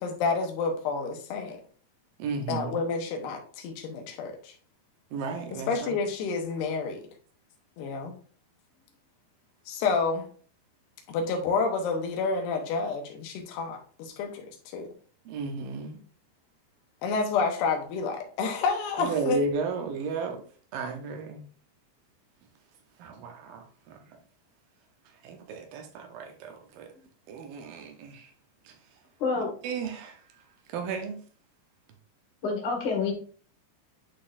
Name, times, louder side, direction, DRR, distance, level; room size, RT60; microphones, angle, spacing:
voice 1, 0.0-1.6 2.5-4.3 5.7-7.0 7.8-8.1 9.7-10.3 11.1-14.5 14.7-14.9 17.0-19.4, left 4 dB, 85° left, 3 dB, 3.2 m, -29 dB
voice 2, 2.2-2.8 5.1-6.0 15.3-16.0 19.0-20.4 20.7-21.4 23.0-24.0 25.2-26.9 27.3-28.3 28.7-28.8 29.6-30.2 30.7-31.2, right 4 dB, 75° right, 5 dB, 2.4 m, -34 dB
voice 3, 29.2-29.5 32.4-33.1, left 4 dB, 50° left, 0 dB, 1.3 m, -27 dB
10.0 x 4.0 x 2.6 m, 0.43 s
omnidirectional pair, 4.7 m